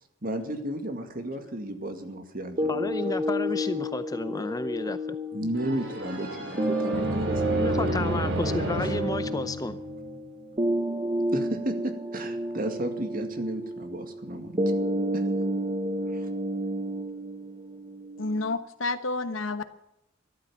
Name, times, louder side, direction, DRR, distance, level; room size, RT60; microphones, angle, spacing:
voice 1, 0.2-3.0 5.3-8.6 11.3-14.6 16.1-16.3, right 1 dB, 45° right, 6 dB, 2.1 m, -34 dB
sound 1, 2.6-18.6, equal, 25° right, 1.1 m, -31 dB
voice 2, 2.7-5.2 7.6-9.8, left 2 dB, 20° left, 12 dB, 0.6 m, -32 dB
sound 2, 5.5-10.3, right 1 dB, 65° right, 4.6 m, -32 dB
voice 3, 18.2-19.6, left 3 dB, 85° left, 11 dB, 1.2 m, -29 dB
13.5 x 12.0 x 7.1 m, 0.86 s
head